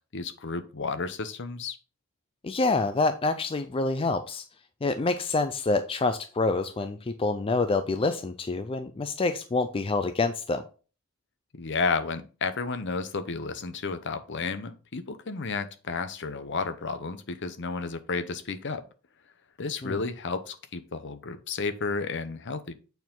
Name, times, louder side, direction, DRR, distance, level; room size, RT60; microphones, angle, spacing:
voice 1, 0.1-1.8 11.5-18.8 19.6-22.7, left 4 dB, 55° left, 10 dB, 0.8 m, -32 dB
voice 2, 2.4-4.4 4.8-10.6 19.8-20.0, left 3 dB, 25° left, 9 dB, 0.4 m, -27 dB
8.2 x 4.6 x 3.8 m, 0.35 s
head